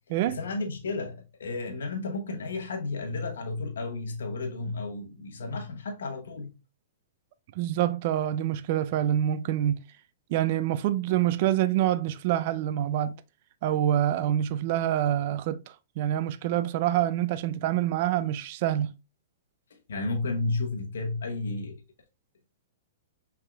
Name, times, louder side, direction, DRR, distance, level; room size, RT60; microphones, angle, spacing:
voice 1, 0.3-6.5 19.9-21.8, left 3 dB, 90° left, 1.0 m, -32 dB
voice 2, 7.6-9.8 10.3-13.2 13.6-18.9, right 12 dB, 45° right, 0.3 m, -26 dB
5.7 x 3.5 x 2.3 m
hypercardioid pair, 155°, 0 cm